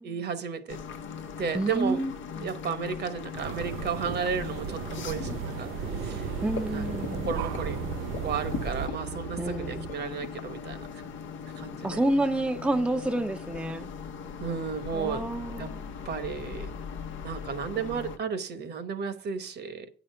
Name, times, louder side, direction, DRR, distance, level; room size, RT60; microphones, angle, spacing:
voice 1, 0.0-0.8 1.4-2.0 2.4-5.7 6.0-6.3 6.7-7.8 8.2-10.9 11.6-12.0 14.4-15.3 15.6-15.7 16.0-16.7 17.2-19.9, right 6 dB, 55° right, 1.1 m, -33 dB
sound 1, 0.7-18.2, left 6 dB, 75° left, 0.8 m, -39 dB
voice 2, 1.5-2.5 6.4-7.4 9.4-9.9 11.8-13.9 14.9-15.9, right 1 dB, 5° right, 0.6 m, -29 dB
sound 2, 3.3-8.9, right 8 dB, 85° right, 0.5 m, -36 dB
sound 3, 4.0-9.9, right 7 dB, 35° right, 0.8 m, -39 dB
8.7 x 5.1 x 5.7 m
cardioid pair, 90°, 20 cm